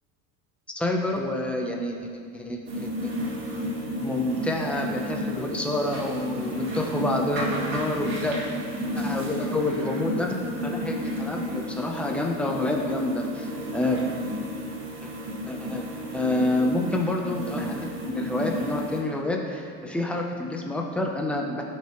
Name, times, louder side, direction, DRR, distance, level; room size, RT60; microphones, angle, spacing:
voice 1, 0.7-3.1 3.5-3.6 4.0-8.4 9.0-10.3 10.6-14.0 15.5-15.8 16.1-21.6, left 2 dB, 5° left, 0 dB, 0.7 m, -28 dB
sound 1, 2.7-19.0, equal, 40° right, 2.0 m, -32 dB
16.5 x 5.8 x 3.1 m, 2.4 s
cardioid pair, 165°, 31 cm